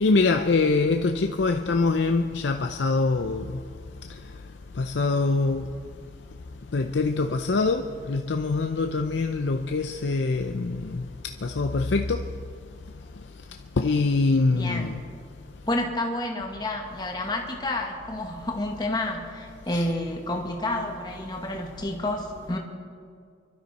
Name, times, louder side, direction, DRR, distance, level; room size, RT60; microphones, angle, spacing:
voice 1, 0.0-3.5 4.8-5.7 6.7-11.0 11.4-12.2 13.8-15.0 19.7-19.8, left 3 dB, 85° left, 0.6 m, -24 dB
voice 2, 14.5-15.0 15.7-22.6, left 1 dB, 25° left, 1.6 m, -30 dB
24.5 x 12.5 x 4.2 m
head